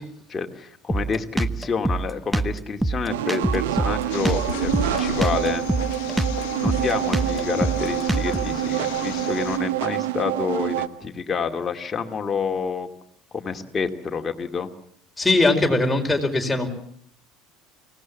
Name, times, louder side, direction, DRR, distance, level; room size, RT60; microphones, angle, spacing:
voice 1, 0.3-5.7 6.6-12.9 13.3-14.7, left 5 dB, 30° left, 4 dB, 2.3 m, -28 dB
Drum kit, 0.9-8.6, right 2 dB, 10° right, 0.9 m, -25 dB
sound 1, 3.1-10.9, right 14 dB, 75° right, 0.9 m, -27 dB
sound 2, 4.1-9.6, left 13 dB, 65° left, 1.4 m, -34 dB
voice 2, 15.2-16.7, left 2 dB, 10° left, 2 dB, 4.8 m, -20 dB
25.0 x 18.5 x 7.3 m, 0.64 s
hypercardioid pair, 70°, 0 cm